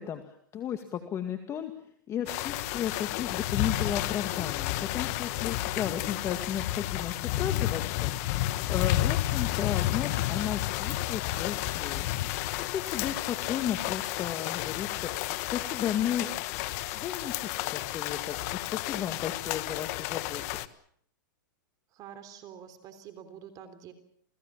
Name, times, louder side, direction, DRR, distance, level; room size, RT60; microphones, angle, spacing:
voice 1, 0.0-1.7 2.1-8.1 8.6-12.1 12.7-16.3 16.9-20.4, left 9 dB, 25° left, 6 dB, 2.2 m, -34 dB
sound 1, 2.3-20.7, left 15 dB, 50° left, 1.4 m, -31 dB
voice 2, 21.9-23.9, right 9 dB, 35° right, 9 dB, 3.5 m, -47 dB
28.5 x 18.5 x 7.4 m, 0.65 s
hypercardioid pair, 135°, 11 cm